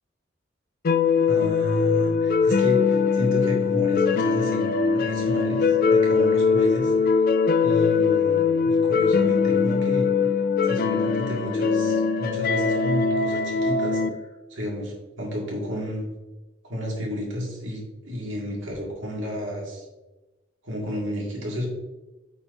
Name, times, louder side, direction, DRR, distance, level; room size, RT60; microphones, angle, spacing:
sound 1, 0.8-14.1, left 5 dB, 50° left, 0.4 m, -21 dB
voice 1, 1.3-6.9 7.6-10.1 10.6-14.0 14.5-16.1 16.6-19.9 20.6-21.7, equal, 85° right, -2 dB, 1.9 m, -31 dB
8.5 x 4.5 x 2.6 m, 1.1 s
head